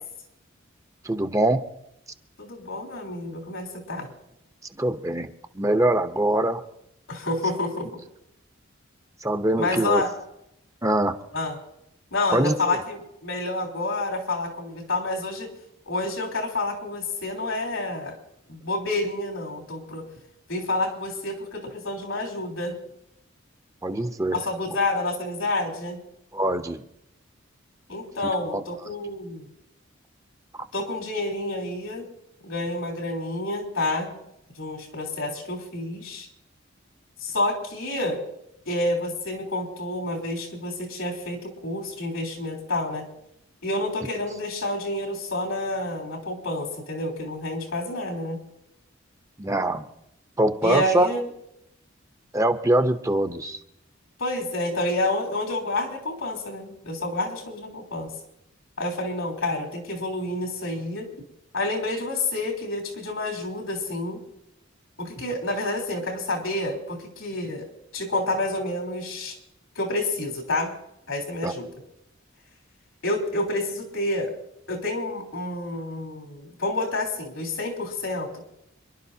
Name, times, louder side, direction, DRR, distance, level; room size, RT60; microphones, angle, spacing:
voice 1, 1.0-1.7 4.8-5.3 5.5-6.6 9.2-10.0 10.8-11.1 12.3-12.8 23.8-24.4 26.3-26.8 28.5-28.6 49.4-49.9 50.4-51.1 52.3-53.6 71.4-71.5, right 1 dB, 15° right, 8 dB, 0.8 m, -23 dB
voice 2, 2.4-4.1 7.1-8.0 9.6-10.1 11.3-11.6 12.1-15.5 15.9-18.2 18.5-20.0 20.5-22.7 24.3-26.0 27.9-29.5 30.7-32.1 32.4-34.1 34.6-36.3 37.2-38.2 38.7-43.0 43.6-48.4 50.6-51.3 54.2-58.1 58.8-61.1 61.5-64.2 65.0-67.7 67.9-69.4 69.8-70.7 71.1-71.7 73.0-74.3 74.7-78.4, left 2 dB, 90° left, 0 dB, 3.6 m, -29 dB
27.5 x 11.5 x 2.8 m, 0.81 s
head